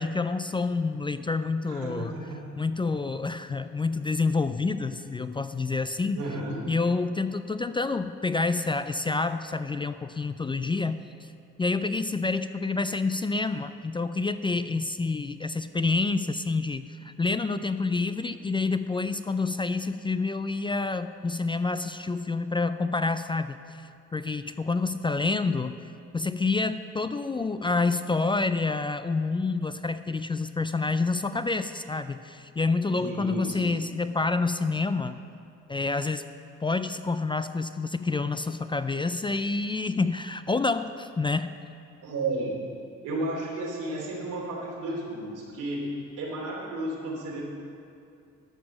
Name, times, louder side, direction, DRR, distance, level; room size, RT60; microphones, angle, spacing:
voice 1, 0.0-2.1 2.6-6.2 6.7-11.3 11.6-35.2 35.7-36.2 36.6-41.5, left 3 dB, 15° left, 11 dB, 0.3 m, -28 dB
voice 2, 1.7-2.4 6.1-6.7 33.0-33.8 42.0-42.6 43.0-47.4, right 2 dB, 90° right, -4 dB, 3.0 m, -33 dB
12.5 x 6.0 x 7.2 m, 2.5 s
cardioid pair, 90°, 30 cm